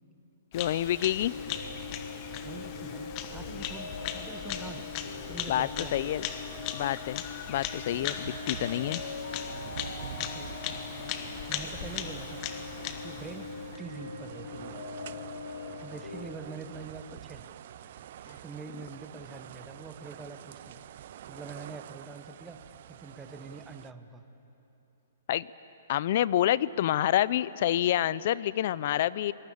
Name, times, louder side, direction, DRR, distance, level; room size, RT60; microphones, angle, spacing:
voice 1, 0.5-1.3 5.5-6.2 6.7-7.2 7.5-9.0 25.3-25.5 25.9-29.3, left 12 dB, 45° left, 19 dB, 0.5 m, -27 dB
Bird vocalization bird call bird song, 0.5-13.8, left 9 dB, 30° left, 1.2 m, -39 dB
sound 1, 1.3-16.3, left 4 dB, 60° left, 4.0 m, -42 dB
voice 2, 2.4-6.3 10.2-10.6 11.5-12.5 13.0-14.8 15.8-17.5 17.8-20.8 21.3-22.6 22.9-24.3, right 4 dB, 10° right, 8 dB, 1.0 m, -45 dB
sound 2, 7.8-23.9, right 11 dB, 50° right, 0.4 m, -47 dB
25.0 x 19.0 x 8.6 m, 2.9 s
hypercardioid pair, 165°, 0 cm